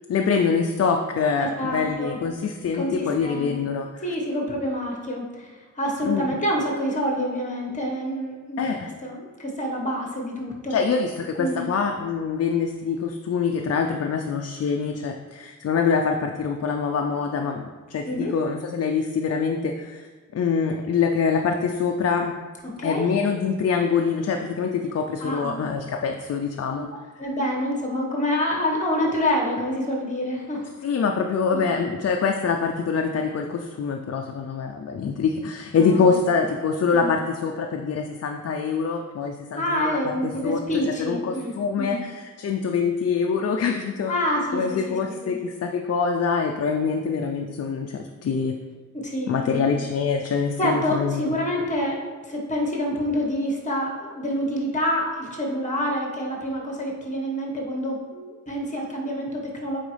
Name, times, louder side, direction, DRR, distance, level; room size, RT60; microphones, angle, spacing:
voice 1, 0.1-4.0 6.0-6.3 8.6-8.9 10.7-17.6 17.9-20.1 20.3-22.3 22.8-26.9 27.2-27.3 30.8-44.2 44.5-48.5 49.3-51.4, left 5 dB, 50° left, 3 dB, 0.4 m, -25 dB
voice 2, 1.4-2.2 2.8-3.5 4.0-8.6 9.0-10.8 11.4-11.7 18.1-18.3 22.8-23.0 25.2-25.7 27.2-30.7 35.8-36.2 36.9-37.1 39.5-42.0 44.1-44.9 45.2-45.4 49.0-49.7 50.6-59.8, equal, 25° left, -1 dB, 1.3 m, -27 dB
9.0 x 4.0 x 3.3 m, 1.4 s
wide cardioid pair, 130°, 32 cm